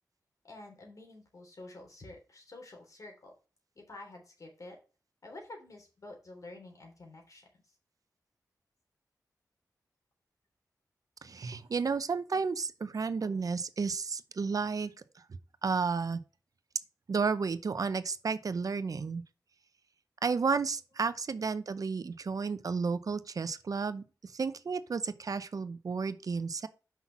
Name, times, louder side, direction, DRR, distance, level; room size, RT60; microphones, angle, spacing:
voice 1, 0.4-3.3 3.7-4.8 5.2-7.4, left 2 dB, 55° left, 3.4 m, -49 dB
voice 2, 11.2-14.9 15.6-16.2 17.1-19.2 20.2-26.7, right 5 dB, 65° right, 0.7 m, -32 dB
5.8 x 5.7 x 5.9 m
wide cardioid pair, 80°, 7 cm